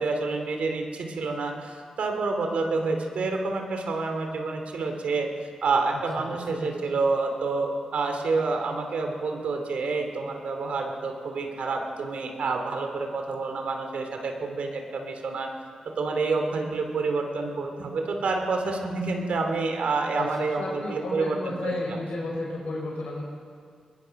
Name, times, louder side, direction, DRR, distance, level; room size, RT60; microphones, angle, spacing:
voice 1, 0.0-5.3 5.6-15.5 16.0-22.0, right 3 dB, 80° right, 4 dB, 2.9 m, -28 dB
voice 2, 20.6-23.2, left 2 dB, 85° left, -3 dB, 5.9 m, -32 dB
22.0 x 21.0 x 5.9 m, 2.1 s
wide cardioid pair, 95°, 2 cm